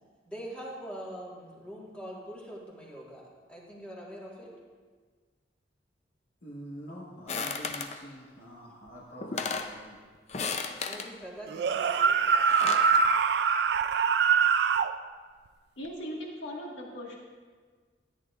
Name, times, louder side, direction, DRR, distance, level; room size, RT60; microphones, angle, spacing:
voice 1, 0.3-4.5 10.8-12.3, equal, 5° left, -5 dB, 1.6 m, -43 dB
voice 2, 6.4-10.0, equal, 60° left, -6 dB, 1.4 m, -45 dB
sound 1, 7.3-8.0 8.9-9.0 9.2-9.7 10.3-11.1 12.3-12.9, left 5 dB, 35° left, 0.5 m, -34 dB
sound 2, 11.5-14.9, right 6 dB, 60° right, 0.3 m, -24 dB
voice 3, 15.8-17.2, equal, 85° left, -2 dB, 1.8 m, -39 dB
13.5 x 9.4 x 2.4 m, 1.5 s
head